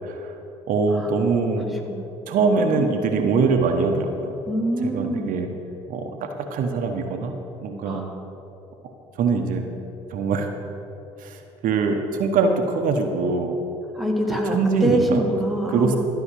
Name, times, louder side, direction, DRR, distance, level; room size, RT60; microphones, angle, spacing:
voice 1, 0.0-0.3 0.7-1.7 2.3-4.3 4.8-5.5 5.9-7.3 7.6-8.0 8.8-8.9 9.2-9.6 10.1-10.5 11.2-13.6 14.3-15.2 15.7-16.0, right 4 dB, 55° right, 5 dB, 1.0 m, -23 dB
voice 2, 2.6-2.9 4.5-5.3 7.8-8.2 14.0-16.0, right 1 dB, ahead, 2 dB, 1.7 m, -24 dB
12.5 x 5.8 x 7.4 m, 3.0 s
hypercardioid pair, 55°, 16 cm